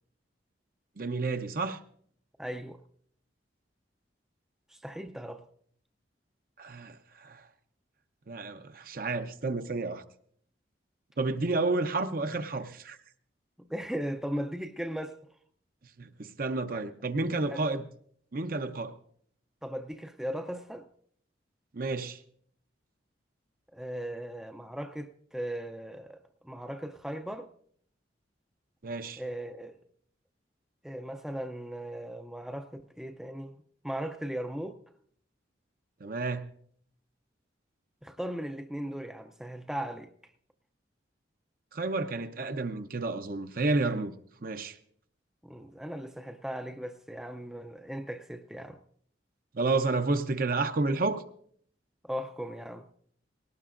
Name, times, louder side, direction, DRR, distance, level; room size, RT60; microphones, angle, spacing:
voice 1, 1.0-1.8 6.6-7.5 8.3-10.0 11.2-13.0 16.0-17.9 18.3-18.9 21.7-22.2 28.8-29.2 36.0-36.4 41.7-44.1 44.4-44.8 49.5-51.2, right 3 dB, 50° right, 0.7 m, -30 dB
voice 2, 2.4-2.8 4.7-5.4 13.6-15.2 16.7-16.8 17.5-17.7 19.6-20.9 23.7-27.5 29.2-29.8 30.8-33.5 33.8-34.8 38.0-40.1 45.4-48.8 52.0-52.9, equal, 5° right, 0.5 m, -37 dB
19.5 x 18.0 x 2.5 m
head